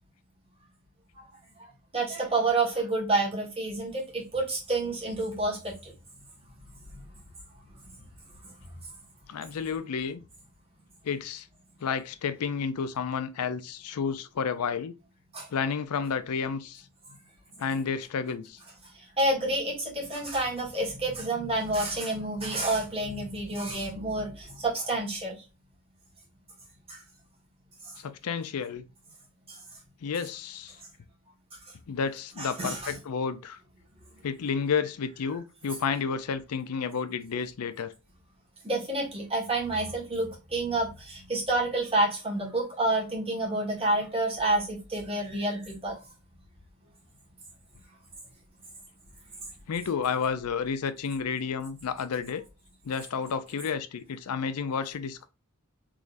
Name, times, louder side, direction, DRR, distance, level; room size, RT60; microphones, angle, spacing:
voice 1, 1.9-5.9 6.9-7.0 15.3-15.5 18.9-25.4 26.9-27.0 27.8-27.9 29.5-29.6 32.4-32.9 38.6-46.0, right 2 dB, 25° right, 1.6 m, -29 dB
voice 2, 9.3-10.2 11.0-11.5 11.8-14.9 15.5-16.8 17.6-18.6 28.0-28.8 30.0-30.8 31.9-33.6 34.2-37.9 49.7-52.4 52.8-55.2, left 6 dB, 80° left, 0.4 m, -31 dB
3.6 x 3.2 x 2.5 m
head